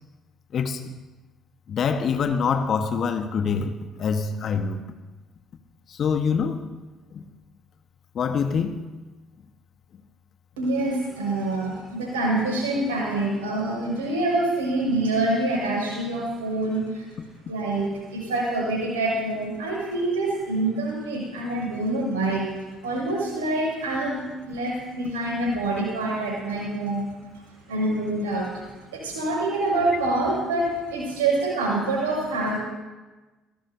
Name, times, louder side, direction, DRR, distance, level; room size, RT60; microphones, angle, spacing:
voice 1, 0.5-0.9 1.7-4.8 5.9-6.7 7.1-7.2 8.1-8.8, left 6 dB, 50° left, 7 dB, 1.4 m, -25 dB
voice 2, 10.6-17.1 17.5-22.5 22.8-27.1 27.3-32.5, right 2 dB, 75° right, -3 dB, 6.2 m, -26 dB
24.5 x 17.5 x 2.8 m, 1.2 s
figure-of-eight pair, 50°, 0 cm